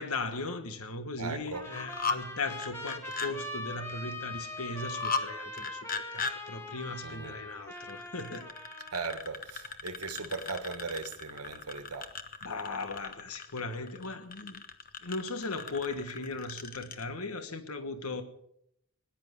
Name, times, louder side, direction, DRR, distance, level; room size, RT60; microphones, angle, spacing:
voice 1, 0.0-8.5 12.4-14.6 15.0-18.2, left 3 dB, 80° left, 1.4 m, -38 dB
voice 2, 1.2-1.6 7.0-7.4 8.9-12.1, right 4 dB, 90° right, 1.5 m, -38 dB
Trumpet, 1.5-9.2, left 1 dB, 10° left, 1.7 m, -42 dB
sound 1, 1.6-2.2 2.5-3.3 4.8-5.3 5.6-6.3 7.8-17.0, left 5 dB, 40° left, 1.1 m, -37 dB
19.5 x 10.5 x 6.9 m
head